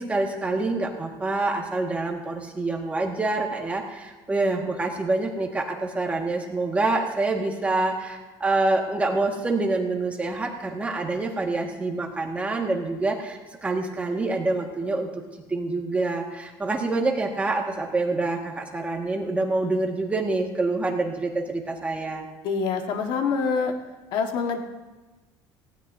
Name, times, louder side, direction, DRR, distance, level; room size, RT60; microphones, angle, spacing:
voice 1, 0.0-15.2 15.5-22.3, right 2 dB, 15° right, 1 dB, 1.7 m, -26 dB
voice 2, 22.4-23.7 24.1-24.6, left 5 dB, 60° left, 4 dB, 1.5 m, -25 dB
18.5 x 16.5 x 2.7 m, 1.2 s
cardioid pair, 145°, 9 cm